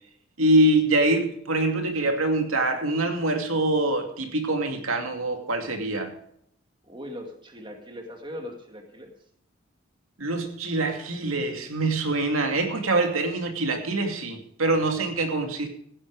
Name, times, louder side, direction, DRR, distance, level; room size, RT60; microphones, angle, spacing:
voice 1, 0.4-6.1 10.2-15.7, right 2 dB, 85° right, 4 dB, 2.5 m, -24 dB
voice 2, 6.8-9.1, left 1 dB, 25° right, 3 dB, 2.2 m, -39 dB
16.0 x 10.5 x 4.9 m, 0.67 s
head